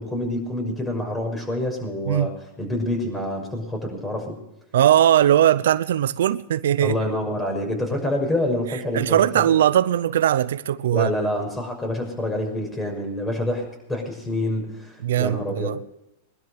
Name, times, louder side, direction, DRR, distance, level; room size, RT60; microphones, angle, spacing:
voice 1, 0.0-4.4 6.8-9.4 10.9-15.7, left 1 dB, 10° left, 6.2 m, -27 dB
voice 2, 4.7-7.0 8.9-11.1 15.0-15.8, right 11 dB, 80° right, 0.7 m, -19 dB
22.0 x 12.5 x 4.7 m
supercardioid pair, 135°, 0 cm